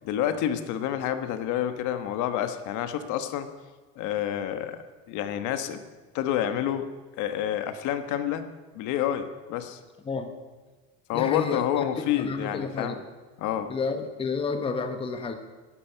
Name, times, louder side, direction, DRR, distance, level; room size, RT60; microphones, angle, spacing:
voice 1, 0.0-3.5 4.0-4.8 5.1-5.8 6.1-6.9 7.2-8.5 8.7-9.8 11.1-13.0 13.4-13.7, left 10 dB, 65° left, 9 dB, 1.2 m, -28 dB
voice 2, 11.1-11.6 12.0-13.0 13.7-15.3, left 4 dB, 15° left, 7 dB, 0.9 m, -30 dB
11.5 x 10.5 x 7.9 m, 1.3 s
cardioid pair, 155°, 32 cm